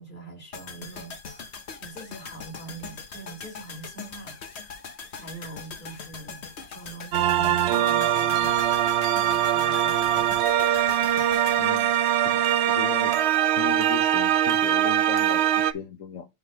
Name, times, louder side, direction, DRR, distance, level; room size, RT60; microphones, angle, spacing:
voice 1, 0.0-4.8 5.1-8.6 9.1-10.4, right 3 dB, 40° left, 2.5 m, -44 dB
sound 1, 0.5-12.7 13.0-13.1, left 5 dB, 60° left, 1.3 m, -41 dB
sound 2, 7.1-15.7, right 11 dB, 65° right, 0.7 m, -22 dB
voice 2, 11.6-11.9 12.2-13.1 13.6-16.3, left 7 dB, 80° left, 1.4 m, -36 dB
9.2 x 3.9 x 3.0 m
omnidirectional pair, 1.3 m